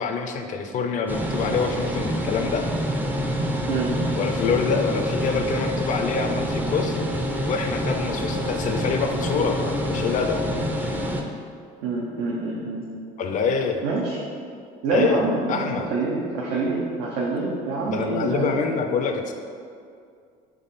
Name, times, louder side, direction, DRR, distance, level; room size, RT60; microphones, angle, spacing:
voice 1, 0.0-2.6 4.2-7.0 7.5-10.4 13.2-13.8 14.9-15.9 17.9-19.3, left 5 dB, 50° left, 5 dB, 0.5 m, -26 dB
sound 1, 1.1-11.2, equal, 10° right, 0.4 m, -27 dB
voice 2, 11.8-12.8 13.8-14.2 14.8-18.6, right 3 dB, 80° right, -4 dB, 0.6 m, -26 dB
3.6 x 3.1 x 4.1 m, 2.3 s
supercardioid pair, 95°, 17 cm